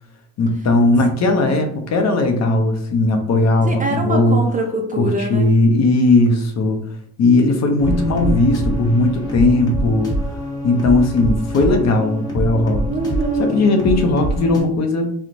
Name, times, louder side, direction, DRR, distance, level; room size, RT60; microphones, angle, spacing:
voice 1, 0.4-4.4 5.0-6.8 7.2-10.1 10.6-12.8 13.4-15.1, left 2 dB, 40° left, 5 dB, 0.6 m, -17 dB
voice 2, 1.0-1.6 3.6-5.5 12.9-13.6, right 2 dB, 20° right, 2 dB, 0.5 m, -24 dB
sound 1, 7.8-14.6, right 1 dB, 10° left, 1.1 m, -24 dB
2.9 x 2.1 x 2.5 m, 0.66 s
supercardioid pair, 75°, 40 cm